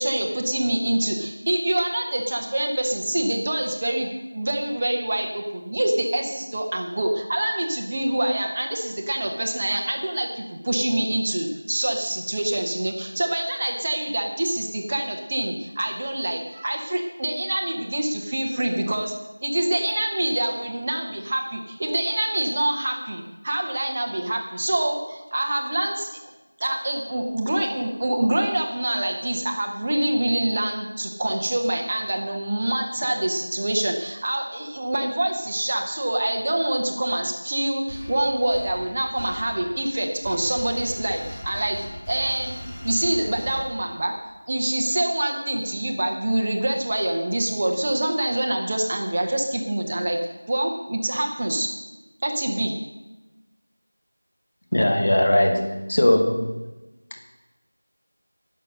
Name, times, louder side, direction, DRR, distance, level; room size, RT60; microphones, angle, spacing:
voice 1, 0.0-19.1 19.4-26.1 26.6-41.8 42.1-42.6 42.8-44.1 44.5-50.2 50.5-51.7 52.2-52.8, right 1 dB, 20° right, 1 dB, 1.1 m, -25 dB
sound 1, 37.9-44.2, equal, 10° left, 1.2 m, -39 dB
voice 2, 54.7-56.6, left 1 dB, 30° left, 3 dB, 1.5 m, -20 dB
18.5 x 6.8 x 6.5 m, 1.1 s
figure-of-eight pair, 175°, 0 cm